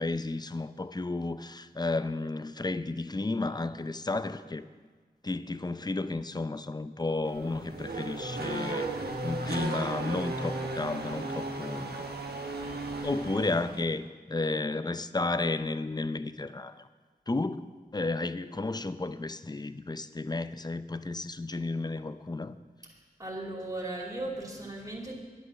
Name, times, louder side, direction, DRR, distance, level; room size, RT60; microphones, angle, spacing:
voice 1, 0.0-4.7 5.2-12.0 13.0-16.9 17.3-17.6 17.9-22.6, left 2 dB, 25° left, 0.5 m, -32 dB
Race car auto racing / Accelerating revving vroom, 7.2-13.9, right 2 dB, 85° right, 1.2 m, -35 dB
voice 2, 23.2-25.2, right 2 dB, 20° right, 2.6 m, -37 dB
10.5 x 10.0 x 6.2 m
wide cardioid pair, 60°, 16 cm